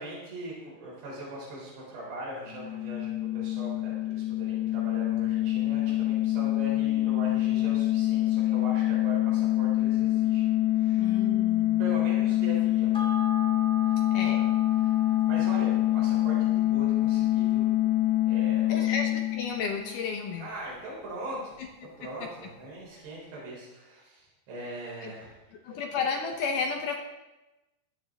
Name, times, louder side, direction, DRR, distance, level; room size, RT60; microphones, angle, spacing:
voice 1, 0.0-10.5 10.7-11.1 11.8-12.9 13.8-14.4 14.8-17.7 18.3-18.9 20.4-25.3 25.7-25.8, right 1 dB, 85° right, -6 dB, 6.0 m, -41 dB
sound 1, 2.5-20.0, left 15 dB, 85° left, 1.8 m, -25 dB
voice 2, 11.0-11.8 14.1-14.5 18.7-20.5 22.0-22.5 25.0-25.1 25.6-27.0, left 5 dB, 70° left, 3 dB, 2.2 m, -32 dB
sound 2, 12.9-21.7 22.0-22.1, equal, 5° left, 0.5 m, -42 dB
16.0 x 12.5 x 3.6 m, 1.0 s
omnidirectional pair, 4.8 m